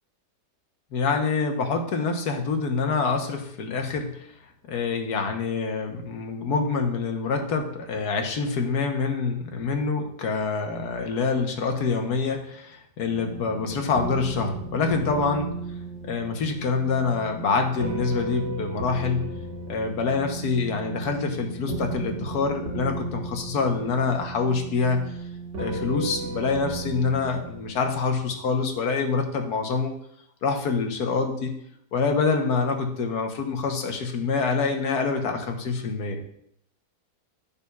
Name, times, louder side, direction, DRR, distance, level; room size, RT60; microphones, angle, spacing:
voice 1, 0.9-4.3 4.7-15.5 16.0-19.3 19.7-25.1 25.6-29.9 30.4-31.6 31.9-36.2, left 4 dB, 65° left, 4 dB, 1.5 m, -26 dB
sound 1, 13.0-28.4, right 3 dB, 85° right, 2.3 m, -35 dB
11.5 x 6.9 x 2.4 m, 0.73 s
omnidirectional pair, 1.9 m